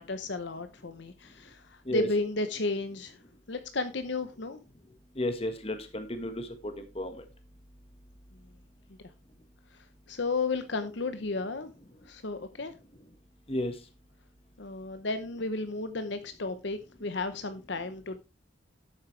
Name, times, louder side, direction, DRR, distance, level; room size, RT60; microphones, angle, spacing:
voice 1, 0.0-3.2 3.5-4.6 9.7-11.7 12.0-12.7 14.6-18.2, left 3 dB, 60° left, 9 dB, 0.8 m, -33 dB
voice 2, 5.2-7.2 13.5-13.7, left 1 dB, 30° left, 8 dB, 1.5 m, -33 dB
12.0 x 8.6 x 3.2 m, 0.28 s
head